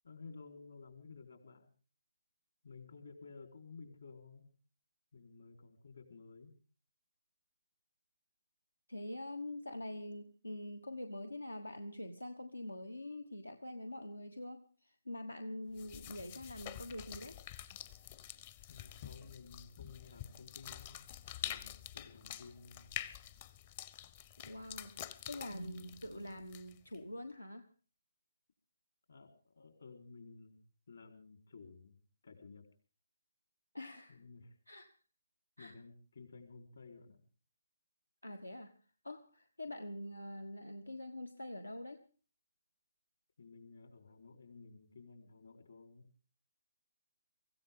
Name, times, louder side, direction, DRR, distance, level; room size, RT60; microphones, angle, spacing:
voice 1, 0.0-1.7 2.6-4.5 5.1-6.5 18.7-21.1 21.4-22.9 29.1-30.6 30.9-32.0 32.2-32.6 34.1-34.5 35.6-37.2 43.4-46.1, left 4 dB, 60° left, 5 dB, 4.2 m, -54 dB
voice 2, 8.9-17.4 24.4-27.7 33.7-34.2 34.7-34.9 35.6-35.8 38.2-38.7 39.0-42.0, left 1 dB, 85° left, 8 dB, 1.3 m, -45 dB
sound 1, 15.8-27.0, left 11 dB, 30° left, 0.8 m, -47 dB
24.5 x 15.5 x 3.7 m, 0.39 s
figure-of-eight pair, 140°, 0 cm